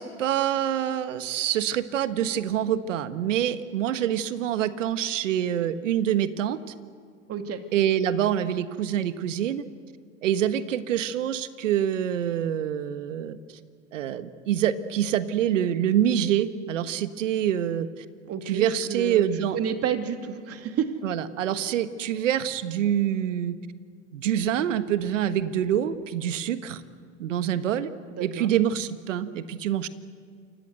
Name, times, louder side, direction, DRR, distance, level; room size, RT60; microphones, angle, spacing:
voice 1, 0.0-6.7 7.7-9.6 10.2-13.4 13.9-18.0 18.5-19.6 21.0-23.6 24.1-26.8 27.2-27.9 28.2-29.9, right 10 dB, 75° right, 12 dB, 1.5 m, -26 dB
voice 2, 7.3-7.6 18.3-20.9 28.1-28.5, right 8 dB, 40° right, 6 dB, 2.9 m, -30 dB
28.5 x 25.5 x 8.1 m, 2.1 s
hypercardioid pair, 85°, 38 cm